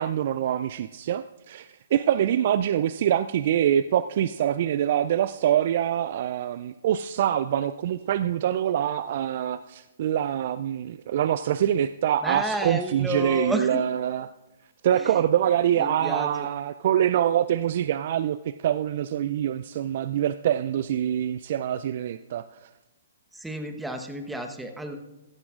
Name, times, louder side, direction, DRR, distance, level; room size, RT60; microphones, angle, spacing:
voice 1, 0.0-14.3 14.8-22.7, right 10 dB, 50° right, 13 dB, 0.3 m, -25 dB
voice 2, 12.2-13.9 14.9-15.2 15.8-16.5 23.3-25.0, equal, 5° right, 6 dB, 1.1 m, -31 dB
15.5 x 14.5 x 2.5 m, 1.0 s
figure-of-eight pair, 125°, 0 cm